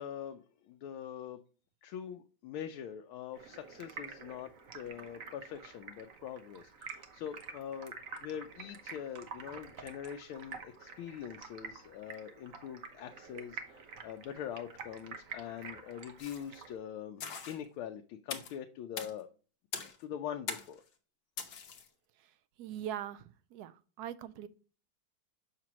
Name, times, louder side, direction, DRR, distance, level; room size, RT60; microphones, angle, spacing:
voice 1, 0.0-1.4 1.8-19.3 19.8-20.8, left 9 dB, 85° left, 1.5 m, -43 dB
Stream, 3.3-16.7, right 5 dB, 50° right, 1.2 m, -48 dB
sound 1, 16.2-16.6 17.2-17.6 18.3-18.6 19.0-19.1 19.7-20.0 20.5-20.8 21.4-21.9, left 6 dB, 60° left, 1.5 m, -41 dB
voice 2, 22.6-24.5, right 10 dB, 85° right, 0.8 m, -41 dB
7.5 x 6.0 x 2.9 m
omnidirectional pair, 2.2 m